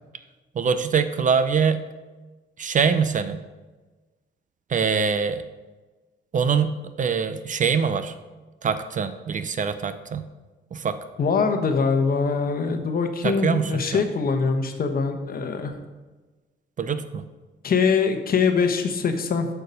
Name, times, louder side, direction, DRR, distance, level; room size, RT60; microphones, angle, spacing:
voice 1, 0.6-1.8 2.6-3.4 4.7-5.4 6.3-8.1 8.6-10.3 10.7-11.0 13.2-13.9 16.8-17.2, right 6 dB, 40° right, 11 dB, 0.5 m, -23 dB
voice 2, 11.2-15.7 17.6-19.5, left 5 dB, 50° left, 6 dB, 1.1 m, -23 dB
6.8 x 6.5 x 5.3 m, 1.2 s
cardioid pair, 90°, 20 cm